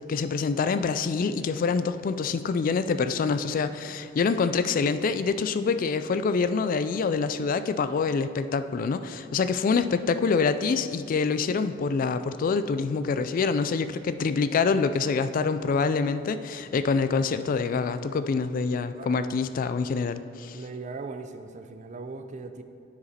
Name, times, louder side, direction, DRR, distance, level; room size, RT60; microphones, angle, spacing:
voice 1, 0.1-20.6, left 5 dB, 45° left, 12 dB, 0.3 m, -26 dB
voice 2, 20.5-22.6, right 3 dB, 40° right, 8 dB, 0.4 m, -39 dB
9.4 x 5.0 x 4.1 m, 2.7 s
head